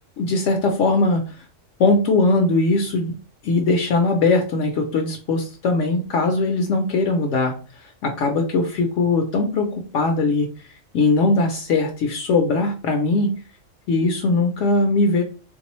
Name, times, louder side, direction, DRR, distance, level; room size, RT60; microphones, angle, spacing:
voice 1, 0.2-1.4 1.8-3.1 3.4-13.3 13.9-15.2, left 3 dB, 70° left, 3 dB, 0.9 m, -20 dB
3.5 x 2.6 x 3.0 m, 0.37 s
omnidirectional pair, 1.4 m